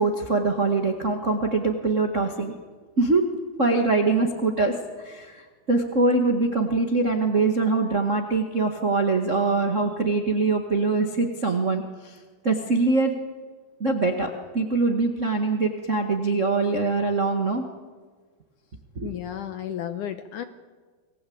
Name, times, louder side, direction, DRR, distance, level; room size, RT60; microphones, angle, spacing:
voice 1, 0.0-2.5 3.0-3.3 3.6-5.4 5.7-12.1 12.4-13.1 13.8-14.3 14.5-17.6 18.9-19.1, right 3 dB, 55° right, 3 dB, 0.8 m, -23 dB
voice 2, 19.0-20.4, left 10 dB, 70° left, 9 dB, 2.0 m, -33 dB
28.0 x 20.0 x 8.7 m, 1.4 s
omnidirectional pair, 4.5 m